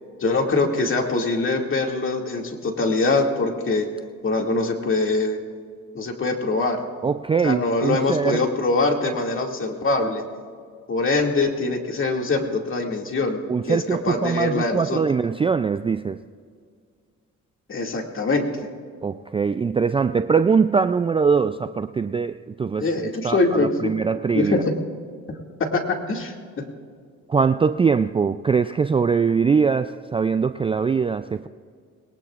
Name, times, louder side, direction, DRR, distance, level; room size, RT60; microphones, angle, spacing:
voice 1, 0.2-3.8 4.2-5.4 5.9-6.8 7.4-10.2 10.9-15.0 17.7-18.5 22.8-23.9 24.3-24.7 25.6-26.3, left 3 dB, 40° left, 2 dB, 2.3 m, -23 dB
voice 2, 7.0-8.4 13.5-16.2 19.0-24.6 27.3-31.5, right 5 dB, 20° right, 11 dB, 0.3 m, -22 dB
21.0 x 19.0 x 2.5 m, 2.1 s
supercardioid pair, 70°, 31 cm